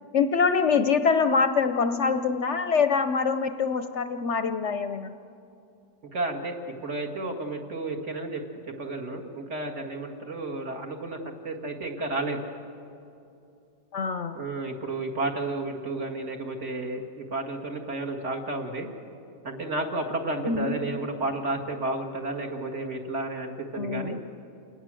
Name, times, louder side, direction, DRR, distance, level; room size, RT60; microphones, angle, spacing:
voice 1, 0.1-5.1 13.9-14.4 20.5-21.0 23.7-24.2, left 5 dB, 60° left, 9 dB, 0.9 m, -25 dB
voice 2, 6.1-8.4 8.8-11.2 11.4-12.5 14.3-18.9 19.4-24.2, right 2 dB, 50° right, 1 dB, 2.2 m, -32 dB
28.5 x 19.0 x 7.6 m, 2.7 s
omnidirectional pair, 1.6 m